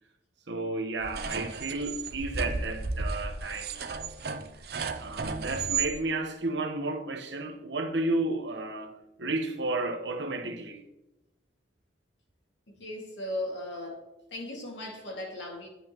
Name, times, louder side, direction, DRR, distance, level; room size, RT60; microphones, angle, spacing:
voice 1, 0.5-4.1 5.0-10.8, right 2 dB, 75° right, 1.2 m, -32 dB
sound 1, 1.0-5.9, right 4 dB, 55° right, 0.6 m, -33 dB
voice 2, 12.7-14.0 14.3-15.7, left 1 dB, 80° left, 2.1 m, -37 dB
10.0 x 9.9 x 3.0 m
head